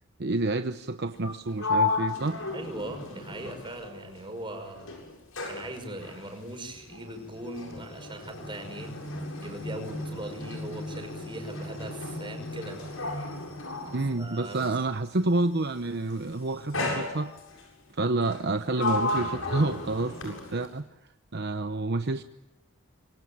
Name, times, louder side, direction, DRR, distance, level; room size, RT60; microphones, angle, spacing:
voice 1, 0.2-2.4 13.9-17.3 17.9-20.8 21.3-22.2, right 2 dB, 55° right, 8 dB, 0.9 m, -28 dB
Sliding door, 1.2-4.5 4.8-14.9 15.8-16.1 16.7-17.7 18.2-20.8, left 3 dB, 90° left, 7.8 m, -34 dB
voice 2, 2.5-4.9 5.4-8.9 9.4-12.9 14.2-14.7, right 1 dB, 25° right, 5 dB, 5.8 m, -40 dB
26.5 x 24.0 x 8.8 m, 0.92 s
head